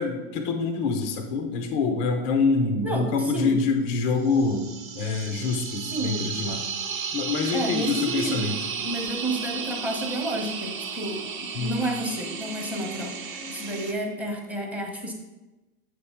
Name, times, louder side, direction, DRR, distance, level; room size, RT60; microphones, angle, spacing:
voice 1, 0.0-4.7 4.9-6.6 7.1-8.6 11.5-11.8, left 4 dB, 15° left, 5 dB, 0.3 m, -25 dB
voice 2, 2.8-3.6 5.9-6.3 7.5-8.5 8.8-13.1 13.5-15.1, right 1 dB, 5° right, 1 dB, 0.8 m, -30 dB
sound 1, 4.2-13.9, right 6 dB, 60° right, 1.1 m, -34 dB
7.7 x 3.4 x 5.5 m, 1.1 s
hypercardioid pair, 130°, 46 cm